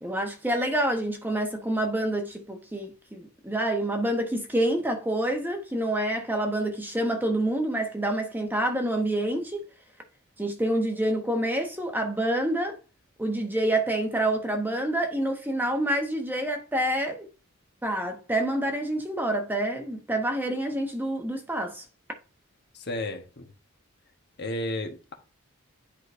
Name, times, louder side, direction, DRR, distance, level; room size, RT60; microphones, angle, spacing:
voice 1, 0.0-9.6 10.4-12.8 13.2-17.3 17.8-21.8, right 1 dB, 10° right, 1.2 m, -27 dB
voice 2, 22.7-23.5 24.4-25.1, left 1 dB, 50° left, 1.3 m, -33 dB
10.5 x 4.9 x 2.6 m
head